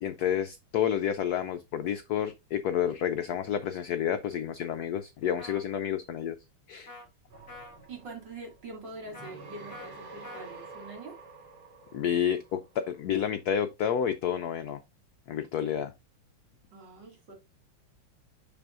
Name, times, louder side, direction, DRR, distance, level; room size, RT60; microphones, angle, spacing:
voice 1, 0.0-6.3 6.7-6.9 11.9-14.8 15.3-15.9, left 9 dB, 80° left, 0.8 m, -30 dB
sound 1, 5.4-5.6 6.9-7.1 7.5-7.8 9.1-9.3 9.7-9.9 10.2-10.5, left 2 dB, 50° left, 3.5 m, -46 dB
sound 2, 7.3-12.9, right 3 dB, 75° right, 3.8 m, -48 dB
voice 2, 7.9-11.2 16.7-17.3, right 3 dB, 60° right, 2.9 m, -44 dB
6.8 x 6.1 x 2.5 m
omnidirectional pair, 2.2 m